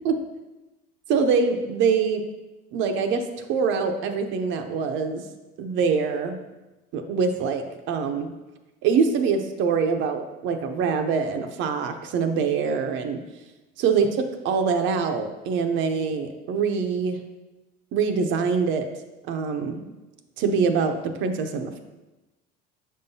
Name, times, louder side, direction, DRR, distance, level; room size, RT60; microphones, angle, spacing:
voice 1, 1.1-2.2 2.7-5.3 5.6-6.4 6.9-8.3 8.8-13.2 13.8-17.2 17.9-18.9 19.3-19.9 20.4-21.8, right 5 dB, 65° right, 6 dB, 0.6 m, -24 dB
6.2 x 5.5 x 2.7 m, 1.1 s
cardioid pair, 125°, 21 cm